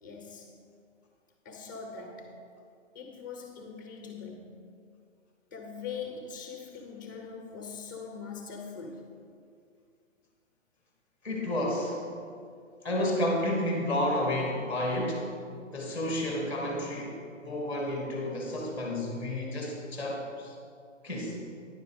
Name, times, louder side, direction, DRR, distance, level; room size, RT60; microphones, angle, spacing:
voice 1, 0.0-0.6 1.4-2.4 2.9-4.8 5.5-9.1, left 5 dB, 15° left, 3 dB, 0.6 m, -42 dB
voice 2, 11.2-12.0 12.8-15.3 15.7-17.2 17.4-20.5 21.0-21.4, left 1 dB, 5° right, -1 dB, 1.6 m, -31 dB
10.0 x 7.0 x 4.8 m, 2.3 s
hypercardioid pair, 165°, 38 cm